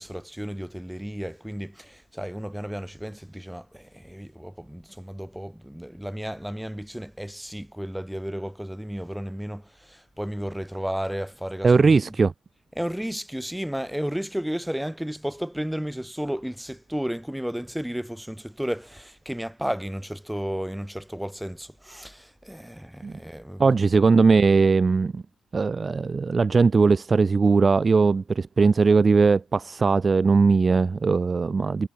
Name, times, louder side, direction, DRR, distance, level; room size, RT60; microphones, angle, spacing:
voice 1, 0.0-12.0 12.8-23.8, equal, ahead, 5.6 m, -33 dB
voice 2, 11.6-12.3 23.0-23.1 23.6-25.2 25.5-31.9, right 4 dB, 25° right, 2.2 m, -19 dB
cardioid pair, 165°, 0 cm